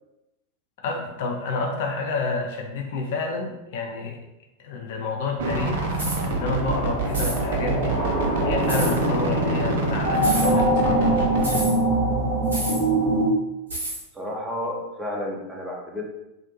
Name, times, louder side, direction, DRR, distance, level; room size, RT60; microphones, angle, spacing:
voice 1, 0.8-4.2 4.6-6.0 6.2-8.0 8.4-11.3, left 3 dB, 55° left, 2 dB, 0.4 m, -29 dB
sound 1, 5.4-11.6, right 2 dB, 55° right, 0.4 m, -27 dB
sound 2, 5.5-13.3, right 1 dB, 30° left, 1.0 m, -24 dB
sound 3, 5.9-6.2 7.1-7.4 8.7-8.9 10.2-10.5 11.4-11.7 12.5-12.8 13.7-14.0, right 1 dB, 70° right, 0.8 m, -30 dB
voice 2, 14.1-16.0, left 1 dB, 10° right, -2 dB, 0.6 m, -31 dB
2.5 x 2.1 x 2.9 m, 0.94 s
figure-of-eight pair, 90°, 0 cm